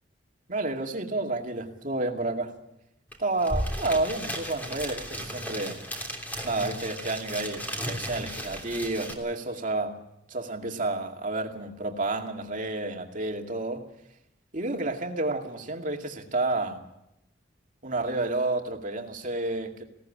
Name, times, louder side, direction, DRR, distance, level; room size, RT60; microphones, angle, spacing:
voice 1, 0.5-2.5 3.2-5.8 6.4-10.0 10.3-13.9 14.5-16.8 17.8-19.8, right 2 dB, 45° right, 2 dB, 2.4 m, -30 dB
sound 1, 3.1-3.2 3.4-9.1, equal, 10° left, 3.1 m, -35 dB
19.5 x 17.5 x 8.6 m, 0.84 s
head